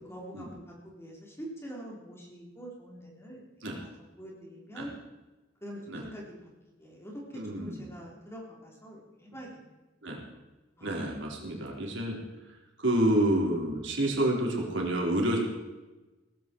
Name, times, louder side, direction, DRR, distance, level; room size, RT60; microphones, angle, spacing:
voice 1, 0.1-0.6 0.8-3.4 3.8-3.9 4.2-4.9 5.6-6.3 6.8-7.2 7.6-9.6 10.8-11.0, equal, 15° left, -2 dB, 4.2 m, -44 dB
voice 2, 7.3-7.9 9.3-9.4 10.0-10.2 10.8-15.4, right 1 dB, 65° right, -1 dB, 4.1 m, -29 dB
18.5 x 15.0 x 4.7 m, 1.1 s
head